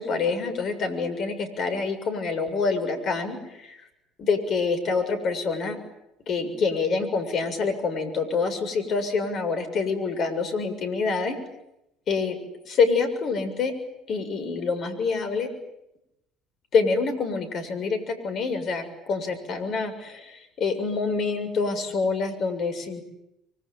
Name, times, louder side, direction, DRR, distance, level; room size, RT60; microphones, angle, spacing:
voice 1, 0.0-3.9 4.2-5.8 6.3-11.3 12.1-12.4 12.7-13.7 14.1-15.5 16.7-23.0, left 4 dB, 50° left, 8 dB, 6.9 m, -26 dB
26.0 x 25.0 x 9.0 m, 0.84 s
hypercardioid pair, 60°, 0 cm